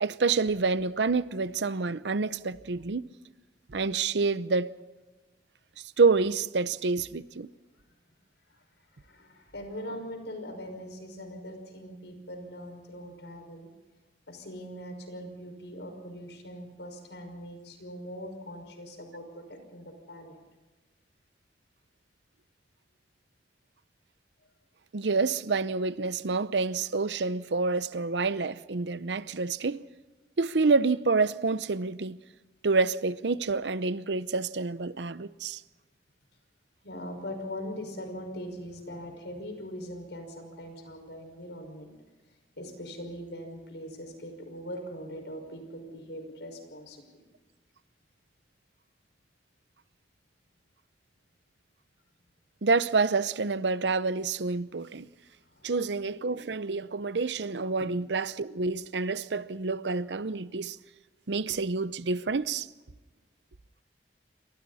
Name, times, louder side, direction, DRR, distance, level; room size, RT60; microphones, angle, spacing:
voice 1, 0.0-3.1 3.7-4.7 6.0-7.5 24.9-29.8 30.4-32.2 32.6-35.6 52.6-55.1 55.6-60.8 61.3-62.7, right 4 dB, 80° right, 0.7 m, -28 dB
voice 2, 9.0-13.7 14.3-20.4 36.8-41.9 42.6-47.0 55.5-55.7, equal, 85° left, 5.6 m, -41 dB
28.5 x 24.5 x 4.2 m
head